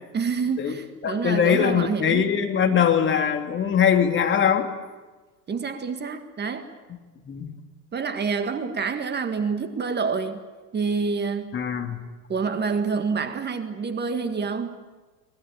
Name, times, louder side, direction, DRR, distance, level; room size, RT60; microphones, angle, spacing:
voice 1, 0.1-2.3 5.5-6.7 7.9-10.4 10.7-11.6 12.3-14.8, right 5 dB, 20° right, 1.8 m, -27 dB
voice 2, 1.0-4.7 7.3-7.5 11.5-12.0, left 8 dB, 25° left, 2.8 m, -22 dB
24.0 x 20.0 x 8.9 m
figure-of-eight pair, 85°, 49 cm